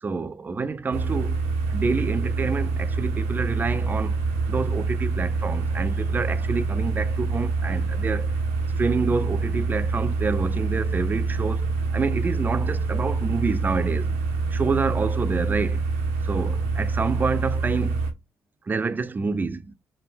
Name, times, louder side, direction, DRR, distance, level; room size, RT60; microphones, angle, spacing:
voice 1, 0.0-1.4 1.7-4.2 4.5-8.4 8.8-14.1 14.5-15.8 16.2-18.0 18.7-19.7, right 4 dB, 30° right, 0.4 m, -28 dB
sound 1, 0.9-18.1, right 4 dB, 90° right, 0.5 m, -26 dB
3.4 x 2.1 x 2.4 m
hypercardioid pair, 50°, 6 cm